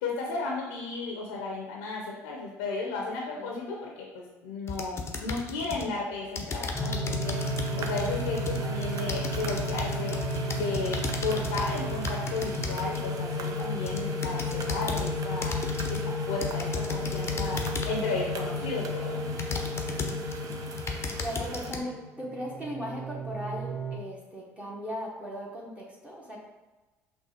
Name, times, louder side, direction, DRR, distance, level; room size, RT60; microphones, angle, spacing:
voice 1, 0.0-15.6 15.9-19.2, left 3 dB, 80° left, -1 dB, 0.7 m, -34 dB
sound 1, 4.7-5.9 6.4-13.1 13.6-15.1 15.4-16.1 16.4-18.1 18.7-18.8 19.4-20.4 20.7-21.8, left 4 dB, 35° left, 0.7 m, -35 dB
sound 2, 6.7-24.0, left 1 dB, 10° left, 1.1 m, -33 dB
sound 3, 7.2-21.7, right 4 dB, 50° right, 0.6 m, -42 dB
voice 2, 21.2-26.4, equal, 15° right, -5 dB, 1.2 m, -37 dB
6.2 x 2.4 x 2.8 m, 1.2 s
hypercardioid pair, 60°, 8 cm